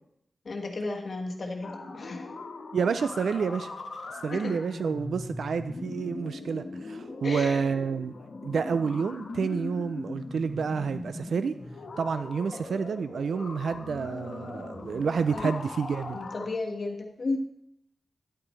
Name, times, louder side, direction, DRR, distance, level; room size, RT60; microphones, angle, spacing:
voice 1, 0.4-2.3 4.3-4.5 7.2-7.6 12.5-12.6 15.3-15.6 16.1-17.4, left 3 dB, 50° left, 1 dB, 1.4 m, -33 dB
sound 1, 1.6-16.5, left 3 dB, 85° left, 1.3 m, -40 dB
voice 2, 2.7-3.7 4.2-8.1 8.4-11.6 12.0-16.2, right 6 dB, 85° right, 11 dB, 0.3 m, -29 dB
10.5 x 8.7 x 3.2 m, 0.76 s
wide cardioid pair, 125°, 0 cm